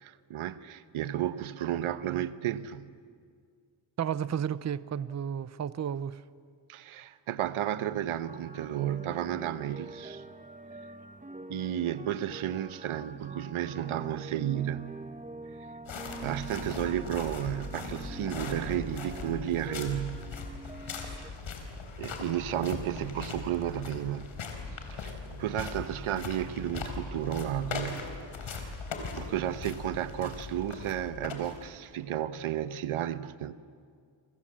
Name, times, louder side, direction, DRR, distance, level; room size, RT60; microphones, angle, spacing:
voice 1, 0.0-2.9 6.7-10.2 11.5-14.9 16.2-20.3 20.8-21.2 22.0-24.4 24.9-28.1 28.4-28.7 29.1-33.5, right 11 dB, 85° right, 1.1 m, -33 dB
voice 2, 4.0-6.2, right 8 dB, 35° right, 0.7 m, -32 dB
sound 1, 8.3-21.3, right 2 dB, 15° right, 1.3 m, -45 dB
sound 2, 15.8-31.9, left 4 dB, 75° left, 4.2 m, -40 dB
28.0 x 26.5 x 7.5 m
cardioid pair, 95°, 48 cm